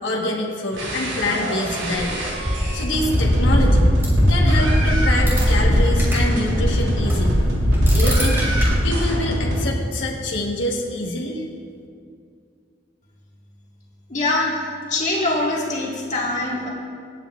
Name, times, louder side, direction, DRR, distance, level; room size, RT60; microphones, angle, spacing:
voice 1, 0.0-2.1 2.7-3.9 4.3-7.4 7.9-8.4 8.8-11.4, left 1 dB, 75° left, -2 dB, 1.3 m, -25 dB
sound 1, 0.7-9.6, equal, 85° right, 2.3 m, -24 dB
sound 2, 1.9-6.2 6.5-8.6, equal, 15° right, 2.7 m, -19 dB
voice 2, 14.1-14.6 14.9-16.7, left 2 dB, 40° left, -4 dB, 1.8 m, -23 dB
23.5 x 8.1 x 2.4 m, 2.2 s
head